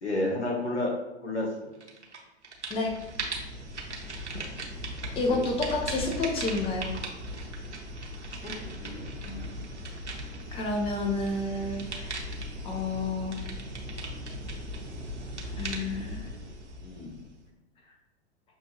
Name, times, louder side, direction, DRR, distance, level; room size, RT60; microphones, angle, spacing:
voice 1, 0.0-0.9 1.2-1.5 5.1-5.5 8.4-8.5 8.8-9.5 16.8-17.1, left 2 dB, 80° left, -2 dB, 1.4 m, -32 dB
sound 1, 1.8-2.2 2.4-17.5, right 1 dB, 85° right, 0.9 m, -38 dB
voice 2, 5.1-6.9 10.5-12.3 12.6-13.3 15.4-16.2, left 2 dB, 15° left, 1 dB, 0.7 m, -30 dB
6.2 x 2.6 x 2.9 m, 1.0 s
figure-of-eight pair, 105°, 34 cm